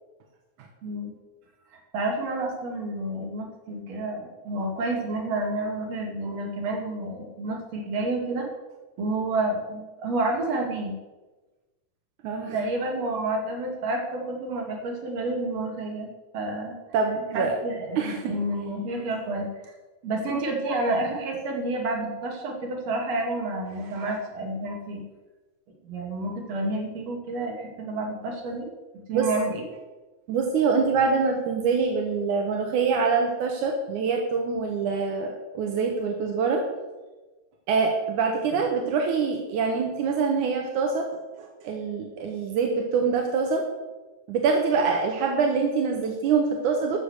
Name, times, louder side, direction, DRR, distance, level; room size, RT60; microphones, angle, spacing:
voice 1, 0.8-1.1 1.9-8.5 9.0-11.0 12.5-16.1 16.3-16.8 17.3-19.5 20.0-25.1 25.8-28.7 28.9-29.6, right 2 dB, 60° right, 0 dB, 3.5 m, -29 dB
voice 2, 12.2-12.6 16.9-17.6 18.0-18.3 29.1-29.3 30.3-36.6 37.7-41.1 41.4-43.6 44.3-47.0, right 5 dB, 80° right, 2 dB, 2.6 m, -25 dB
13.5 x 6.6 x 8.0 m, 1.2 s
omnidirectional pair, 3.5 m